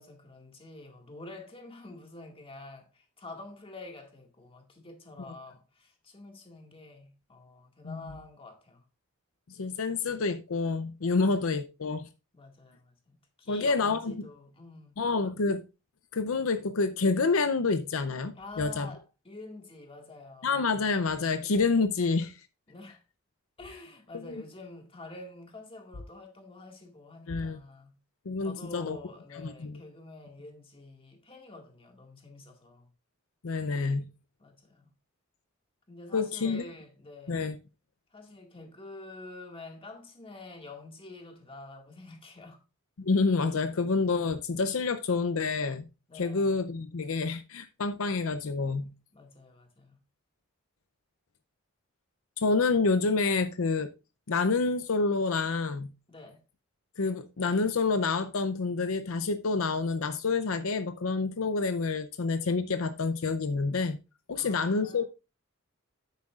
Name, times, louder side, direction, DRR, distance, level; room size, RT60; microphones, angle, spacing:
voice 1, 0.0-8.8 12.3-15.0 18.4-20.5 22.7-23.0 23.6-27.9 28.4-32.9 34.4-34.9 35.9-37.5 38.1-42.6 46.1-46.6 49.1-50.0 56.1-56.4 64.3-65.0, left 2 dB, 25° left, 1.9 m, -47 dB
voice 2, 9.5-12.0 13.5-14.3 15.0-15.6 16.1-18.9 20.4-22.3 24.1-24.4 27.3-27.6 28.3-29.0 29.4-29.7 33.4-34.1 36.1-36.6 37.3-37.5 43.0-45.9 46.2-48.9 52.4-53.9 54.3-55.9 57.0-64.0 64.3-65.0, left 4 dB, 75° left, 0.6 m, -28 dB
9.7 x 8.2 x 2.4 m
head